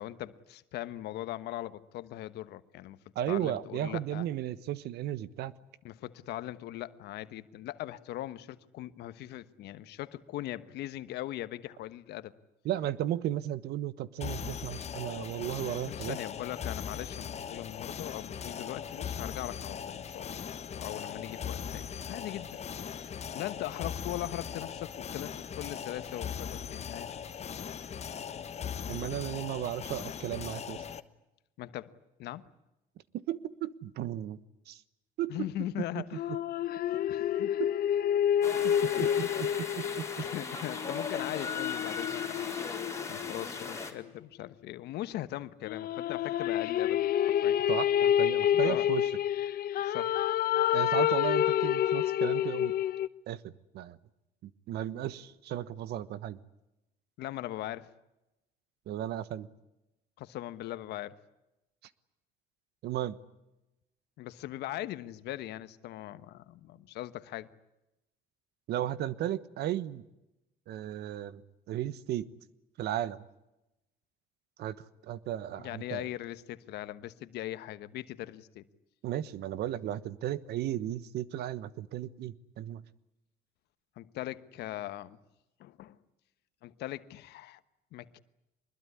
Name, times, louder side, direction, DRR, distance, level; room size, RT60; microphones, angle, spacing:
voice 1, 0.0-3.0 3.3-4.2 5.8-12.3 15.9-20.4 20.8-27.1 28.9-29.2 31.6-31.9 32.2-32.4 35.3-36.2 36.9-37.5 38.9-39.2 40.2-42.6 42.9-47.0 47.3-47.6 48.5-48.9 49.8-50.1 54.9-55.1 57.2-57.9 60.2-61.2 64.2-67.5 75.6-78.6 84.0-85.2 85.6-86.0 86.6-87.6 87.9-88.2, left 14 dB, 80° left, 13 dB, 1.3 m, -40 dB
voice 2, 3.1-5.5 12.6-16.2 28.9-30.8 33.1-34.4 34.7-34.8 35.2-35.4 35.9-36.0 37.6-37.7 38.6-39.1 39.6-40.2 47.7-49.1 50.7-52.7 53.3-54.0 54.4-56.4 58.9-59.5 62.8-63.2 68.7-70.0 70.7-71.4 71.7-72.3 72.8-73.2 74.6-76.1 79.0-82.8, right 12 dB, 75° right, 16 dB, 1.3 m, -35 dB
sound 1, 14.2-31.0, left 8 dB, 40° left, 1.2 m, -39 dB
sound 2, 36.2-43.8 45.7-53.1, left 11 dB, 60° left, 1.0 m, -29 dB
sound 3, 38.4-43.9, left 4 dB, 15° left, 4.1 m, -38 dB
23.5 x 21.5 x 9.8 m, 0.94 s
cardioid pair, 110°, 17 cm